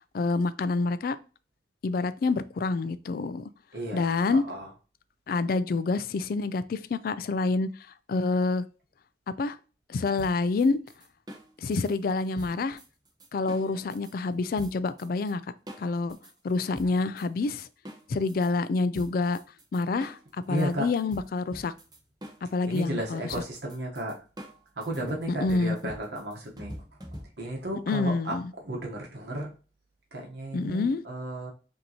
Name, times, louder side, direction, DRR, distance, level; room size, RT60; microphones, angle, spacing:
voice 1, 0.1-1.2 1.8-3.5 3.9-4.4 5.3-7.7 8.1-8.6 9.4-9.6 9.9-10.8 11.6-12.8 13.3-15.4 15.8-16.2 16.4-17.7 18.1-19.4 19.7-21.7 22.5-23.4 25.3-25.8 27.9-28.4 30.5-31.0, left 3 dB, 55° left, 0.3 m, -27 dB
voice 2, 3.7-4.7 20.5-20.9 22.7-24.1 24.8-26.7 27.4-28.4 28.6-29.5 30.1-31.5, right 1 dB, 70° right, 1.1 m, -33 dB
sound 1, 10.2-14.1 14.6-15.3 15.7-18.5 18.9-27.6, equal, 25° right, 0.9 m, -46 dB
5.2 x 2.8 x 2.8 m
head